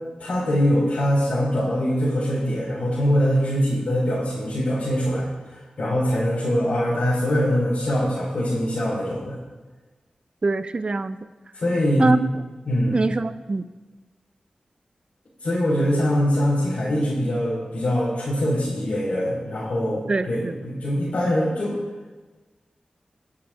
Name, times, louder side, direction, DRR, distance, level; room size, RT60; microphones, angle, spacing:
voice 1, 0.2-5.3 5.8-9.4 11.5-12.1 12.7-13.1 15.4-21.8, equal, 75° left, -8 dB, 4.0 m, -23 dB
voice 2, 10.4-11.2 12.0-12.3 12.9-13.6 20.1-20.5, right 3 dB, 40° right, 12 dB, 0.5 m, -24 dB
19.0 x 8.4 x 3.7 m, 1.3 s
wide cardioid pair, 85°, 2 cm